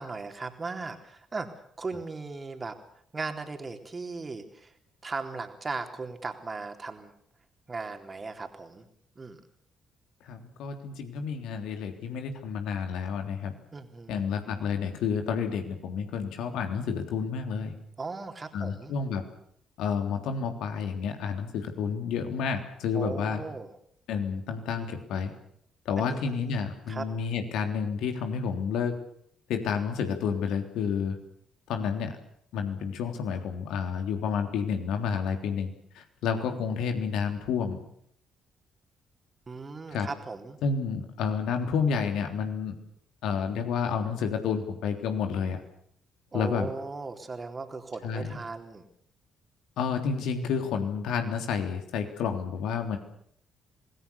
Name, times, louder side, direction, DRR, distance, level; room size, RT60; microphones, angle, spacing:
voice 1, 0.0-1.5 1.8-2.8 3.1-4.7 5.0-7.1 7.7-8.9 9.2-9.4 13.7-14.2 18.0-19.0 22.9-23.7 26.0-26.6 26.9-27.1 39.5-40.6 46.3-48.8, right 4 dB, 30° right, 5 dB, 3.8 m, -37 dB
voice 2, 10.2-13.5 14.1-17.7 18.5-19.2 19.8-23.4 24.1-25.3 25.8-29.0 29.5-31.2 31.7-32.2 32.5-37.8 39.9-40.1 40.6-42.7 43.2-45.6 46.3-46.7 48.0-48.4 49.8-53.0, left 6 dB, 65° left, 5 dB, 3.2 m, -30 dB
26.5 x 20.0 x 7.1 m, 0.69 s
figure-of-eight pair, 45°, 0 cm